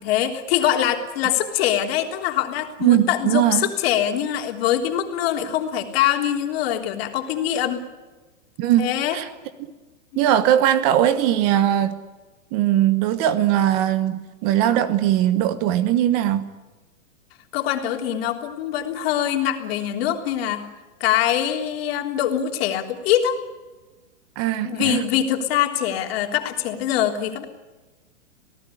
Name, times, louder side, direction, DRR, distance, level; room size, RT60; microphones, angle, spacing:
voice 1, 0.0-7.8 8.8-9.2 10.1-10.2 17.5-20.6 21.0-23.4 24.6-27.4, left 11 dB, 45° left, 4 dB, 3.5 m, -23 dB
voice 2, 2.8-3.7 8.6-9.3 10.2-11.9 12.5-16.4 24.4-25.0, right 11 dB, 30° right, 13 dB, 1.1 m, -20 dB
27.0 x 18.5 x 9.8 m, 1.2 s
hypercardioid pair, 155°, 40 cm